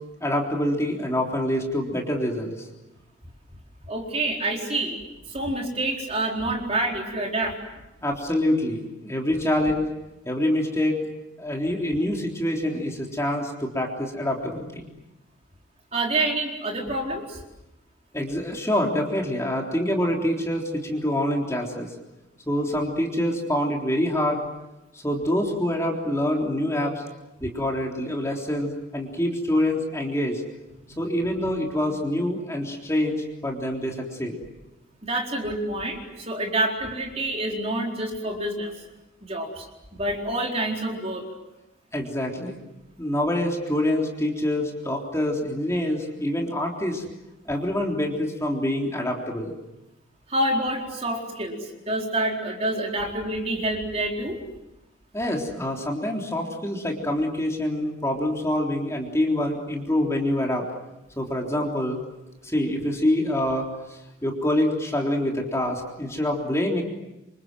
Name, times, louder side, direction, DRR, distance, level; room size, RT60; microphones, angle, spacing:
voice 1, 0.2-2.7 8.0-9.9 10.3-11.0 11.4-14.9 18.1-21.9 22.5-24.4 24.9-27.0 27.4-30.4 31.0-34.4 41.9-42.6 43.0-47.0 47.5-49.5 55.1-60.7 61.2-62.0 62.4-66.8, left 1 dB, 15° left, 0 dB, 3.6 m, -26 dB
voice 2, 3.9-5.0 5.3-7.6 15.9-17.4 30.9-31.0 35.0-38.7 39.3-39.7 39.9-41.3 50.3-54.4, right 1 dB, 30° right, 1 dB, 4.3 m, -27 dB
28.5 x 27.0 x 7.7 m, 0.96 s
head